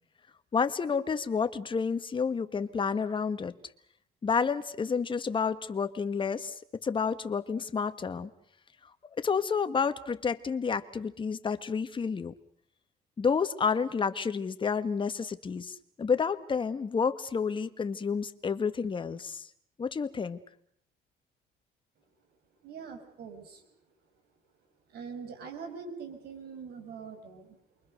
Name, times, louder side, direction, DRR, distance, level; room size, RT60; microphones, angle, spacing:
voice 1, 0.5-3.5 4.2-6.5 6.8-8.3 9.2-12.3 13.2-19.5 19.8-20.4, left 5 dB, 30° left, 10 dB, 1.6 m, -30 dB
voice 2, 22.6-23.7 24.9-27.6, right 5 dB, 70° right, 6 dB, 5.9 m, -43 dB
28.5 x 23.5 x 6.6 m, 0.69 s
cardioid pair, 110°, 17 cm